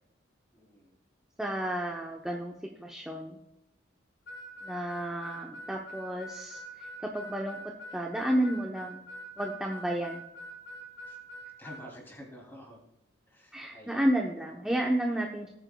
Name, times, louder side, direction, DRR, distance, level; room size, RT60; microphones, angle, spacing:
voice 1, 0.5-0.9 9.8-10.0 11.1-11.2 11.6-12.8 13.3-14.1, equal, 10° left, -1 dB, 2.8 m, -49 dB
voice 2, 1.4-3.4 4.6-9.1 9.4-10.2 13.5-15.5, right 1 dB, 5° right, -1 dB, 0.8 m, -32 dB
Harmonica, 4.3-11.9, right 1 dB, 85° left, 4.0 m, -44 dB
18.5 x 9.1 x 2.3 m, 0.87 s
head